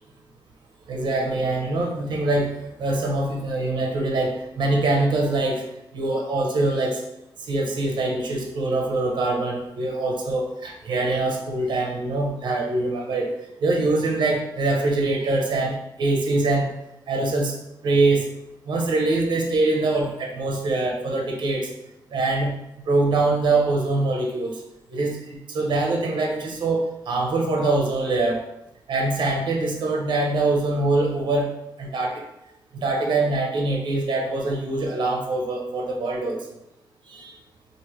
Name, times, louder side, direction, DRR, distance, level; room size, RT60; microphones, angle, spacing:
voice 1, 0.9-2.5 2.8-5.6 5.9-7.0 7.5-13.3 13.6-16.7 17.1-17.5 17.8-18.2 18.7-21.7 22.1-22.5 22.8-24.5 24.9-28.4 28.9-31.5 31.8-32.2 32.7-36.4 37.1-37.3, right 2 dB, 75° right, 0 dB, 0.8 m, -23 dB
4.9 x 2.7 x 3.1 m, 0.85 s
wide cardioid pair, 115°, 8 cm